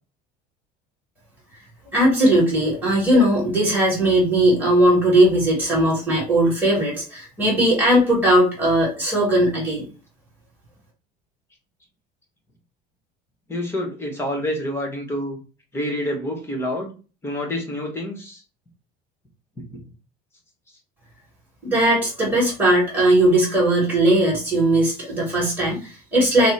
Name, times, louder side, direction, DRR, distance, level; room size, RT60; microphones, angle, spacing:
voice 1, 1.9-9.9 21.6-26.5, right 1 dB, 10° right, -6 dB, 2.2 m, -18 dB
voice 2, 13.5-15.4 15.7-17.0 17.2-18.4 19.6-19.7, left 1 dB, 15° left, 2 dB, 1.0 m, -27 dB
6.0 x 2.1 x 3.2 m, 0.35 s
cardioid pair, 160°, 17 cm